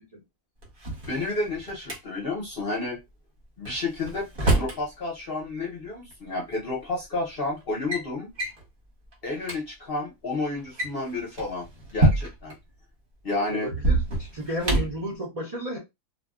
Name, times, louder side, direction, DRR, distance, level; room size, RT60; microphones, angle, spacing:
Drawer open or close, 0.6-2.0 3.6-4.8 6.1-6.2 7.0-7.3 7.6-8.0 8.4-8.6 9.1-9.2 9.4-9.6 10.6-12.6 13.7-15.0, right 2 dB, 45° right, 0.8 m, -26 dB
voice 1, 1.1-3.0 3.6-8.3 9.2-11.7 11.9-12.5 13.2-13.7, left 2 dB, 50° left, 0.7 m, -31 dB
voice 2, 13.3-15.8, equal, 75° right, 0.3 m, -33 dB
2.6 x 2.2 x 2.3 m
omnidirectional pair, 1.8 m